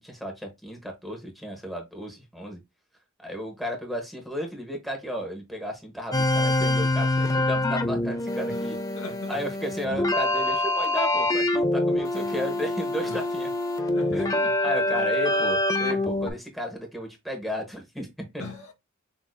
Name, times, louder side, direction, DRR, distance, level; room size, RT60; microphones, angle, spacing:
voice 1, 0.0-2.6 3.2-8.8 9.3-13.5 14.1-18.3, equal, ahead, 1.2 m, -34 dB
sound 1, 6.1-16.3, left 2 dB, 15° left, 0.6 m, -25 dB
voice 2, 8.5-9.4 13.0-13.2 13.9-16.0 18.4-18.7, left 3 dB, 80° left, 2.3 m, -41 dB
6.4 x 2.9 x 2.2 m
head